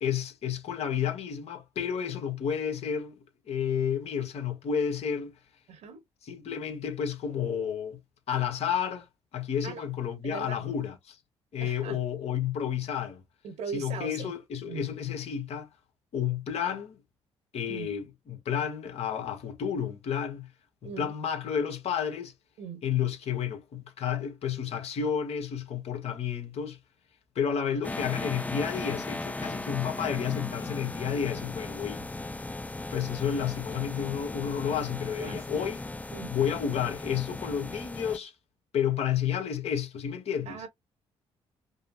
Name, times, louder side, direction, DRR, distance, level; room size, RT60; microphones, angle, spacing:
voice 1, 0.0-3.1 3.5-5.3 6.3-8.0 8.3-9.1 9.3-11.2 11.5-13.2 13.7-15.7 16.1-17.0 17.5-20.5 20.8-22.3 22.8-26.8 27.3-32.0 32.9-35.8 36.3-38.3 38.7-40.6, left 8 dB, 65° left, 1.3 m, -31 dB
voice 2, 5.7-6.0 9.6-9.9 10.2-10.7 11.6-12.0 13.4-14.3 14.7-14.8 17.7-17.9 20.8-21.1 22.6-22.8 34.8-34.9 35.1-35.4 36.1-36.3 40.5-40.7, right 6 dB, 75° right, 1.3 m, -39 dB
sound 1, 27.8-38.2, left 2 dB, 15° left, 0.4 m, -37 dB
5.3 x 2.1 x 2.6 m
supercardioid pair, 70°, 11 cm